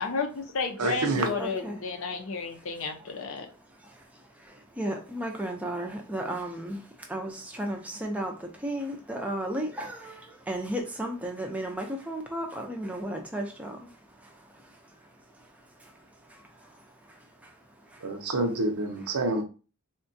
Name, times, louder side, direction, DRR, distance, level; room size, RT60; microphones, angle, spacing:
voice 1, 0.0-3.5, left 4 dB, 60° left, 4 dB, 0.5 m, -32 dB
voice 2, 0.8-1.3 18.0-19.4, right 2 dB, 85° right, 5 dB, 0.7 m, -27 dB
voice 3, 1.4-1.8 3.7-18.3, right 1 dB, 5° right, 2 dB, 0.4 m, -36 dB
3.6 x 2.2 x 2.6 m, 0.36 s
head